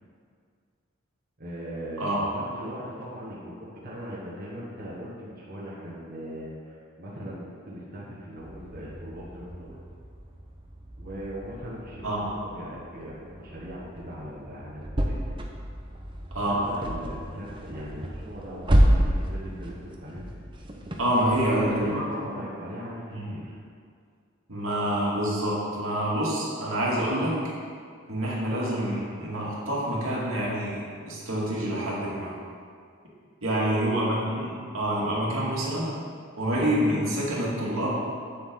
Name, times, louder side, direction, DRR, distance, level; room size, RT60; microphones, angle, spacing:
voice 1, 1.4-9.8 11.0-15.1 16.5-20.3 21.4-23.5 33.7-33.9, equal, 45° right, -7 dB, 1.3 m, -39 dB
sound 1, 8.4-21.9, equal, 25° right, 0.7 m, -30 dB
voice 2, 16.3-16.6 21.0-22.0 23.1-23.2 24.5-27.4 28.1-32.3 33.4-35.9 36.4-38.0, right 1 dB, 75° right, -6 dB, 2.1 m, -27 dB
8.6 x 7.5 x 3.8 m, 2.2 s
head